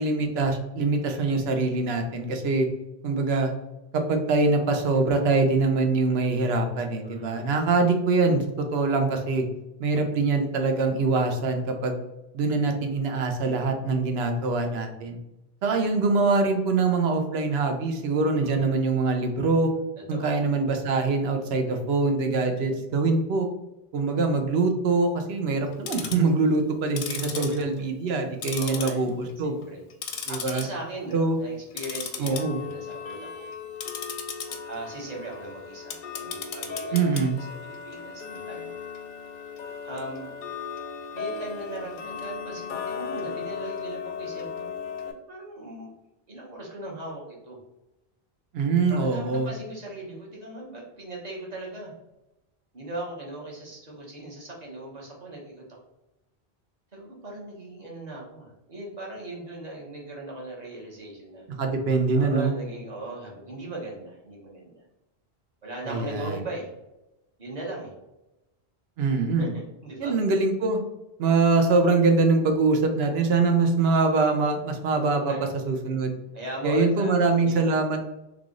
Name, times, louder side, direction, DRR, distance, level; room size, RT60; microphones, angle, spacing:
voice 1, 0.0-2.7 3.0-3.5 3.9-9.4 9.8-12.0 12.3-15.2 15.6-19.7 20.1-23.5 23.9-29.6 30.3-30.7 31.1-31.4 32.2-32.6 36.9-37.4 48.5-49.5 61.6-62.5 65.9-66.4 69.0-69.5 70.0-70.8 71.2-75.3 75.7-76.2 76.6-78.0, right 3 dB, 80° right, 5 dB, 0.8 m, -24 dB
voice 2, 7.0-7.4 13.4-13.7 18.4-18.6 20.1-20.3 21.8-21.9 27.2-27.6 28.6-29.1 29.6-29.8 30.3-33.5 34.6-37.0 37.3-38.7 39.8-40.3 41.1-44.7 45.0-45.9 46.3-47.6 48.9-51.9 52.7-55.6 56.9-61.5 62.1-64.8 65.6-66.7 67.4-67.9 69.3-70.1 75.0-75.5 76.3-77.6, right 2 dB, 40° right, -3 dB, 1.1 m, -38 dB
Tick-tock, 25.7-26.3 26.9-28.2 28.4-29.3 29.6-30.6 31.0-31.3 31.7-45.1, left 6 dB, 60° left, 0.6 m, -36 dB
3.3 x 2.4 x 3.7 m, 0.94 s
omnidirectional pair, 1.1 m